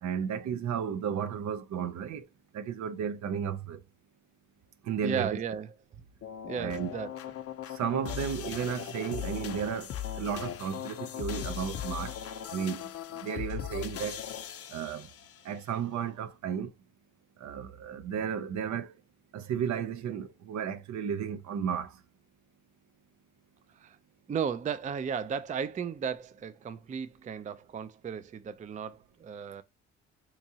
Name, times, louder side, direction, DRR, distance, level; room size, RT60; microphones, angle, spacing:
voice 1, 0.0-2.3 2.5-3.8 4.8-5.4 6.6-6.9 7.7-12.2 12.5-12.9 13.2-14.2 14.7-15.1 15.4-16.7 17.4-18.9 19.3-21.9, right 8 dB, 65° right, 0.6 m, -33 dB
voice 2, 5.0-5.7 6.5-7.1 23.8-24.0 24.3-29.6, right 7 dB, 25° right, 0.4 m, -35 dB
sound 1, 6.2-15.4, left 10 dB, 50° left, 0.6 m, -39 dB
3.6 x 3.0 x 2.7 m
cardioid pair, 90°, 30 cm